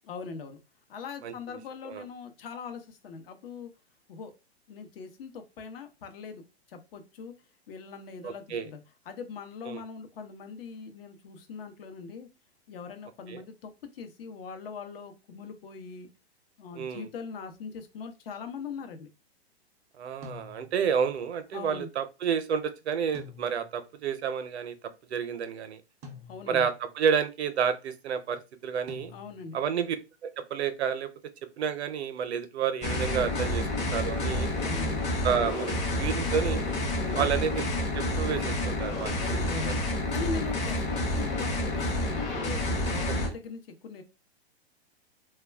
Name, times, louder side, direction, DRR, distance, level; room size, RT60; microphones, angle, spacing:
voice 1, 0.0-0.6 0.9-3.7 4.1-4.3 4.7-6.4 6.7-7.3 7.7-8.8 9.1-12.3 12.7-16.1 16.6-19.1 21.5-21.9 26.3-26.7 29.1-29.6 33.4-33.6 34.3-35.0 36.9-37.3 39.1-39.8 40.1-40.8 41.1-44.0, left 5 dB, 60° left, 0.7 m, -41 dB
voice 2, 8.2-8.7 9.7-9.8 13.3-13.4 16.7-17.1 20.0-24.7 25.1-25.8 26.5-29.1 29.5-30.0 30.2-31.1 31.6-33.6 33.9-34.5 35.2-36.7 37.1-39.7, right 7 dB, 75° right, 0.6 m, -30 dB
sound 1, 20.2-21.0 23.1-23.9 26.0-26.8 28.9-29.6, left 3 dB, 15° right, 0.3 m, -47 dB
sound 2, 32.8-43.3, left 1 dB, 20° left, 0.7 m, -29 dB
2.2 x 2.2 x 3.3 m
hypercardioid pair, 130°, 33 cm